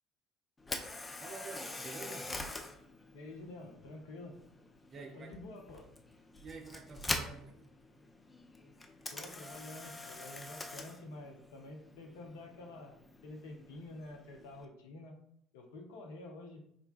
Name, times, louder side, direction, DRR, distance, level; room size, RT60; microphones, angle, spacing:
Camera, 0.6-14.7, left 2 dB, 20° left, 0.4 m, -45 dB
voice 1, 1.2-2.3 4.9-5.4 6.4-7.8, right 4 dB, 40° right, 0.5 m, -48 dB
voice 2, 3.1-4.4 5.0-5.9 9.1-15.2 15.5-16.6, left 2 dB, 70° left, 0.5 m, -49 dB
3.8 x 2.2 x 2.3 m
figure-of-eight pair, 60°, 0 cm